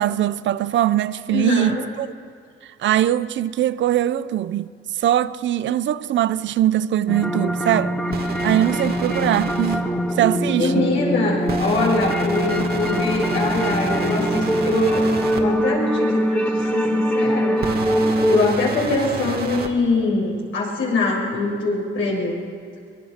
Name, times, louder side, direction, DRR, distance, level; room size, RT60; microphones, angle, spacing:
voice 1, 0.0-2.1 2.8-4.7 5.0-8.0 8.4-9.9 10.2-10.9, right 12 dB, 70° right, 0.7 m, -21 dB
voice 2, 1.3-1.8 10.6-17.6 18.3-22.5, left 3 dB, 75° left, 7.5 m, -23 dB
sound 1, 7.1-18.4, equal, 5° left, 2.2 m, -23 dB
sound 2, 8.1-9.8 11.5-15.4 17.6-19.7, right 5 dB, 50° right, 2.2 m, -30 dB
Tick-tock, 8.6-8.7 9.6-9.7 10.6-10.7 11.6-11.7 12.6-12.7 13.6-13.7 14.6-14.7 15.6-15.7 16.6-16.7 17.6-17.7 18.6-18.7 19.6-19.7, left 5 dB, 60° left, 6.6 m, -45 dB
24.0 x 21.5 x 5.9 m
cardioid pair, 90°, 20 cm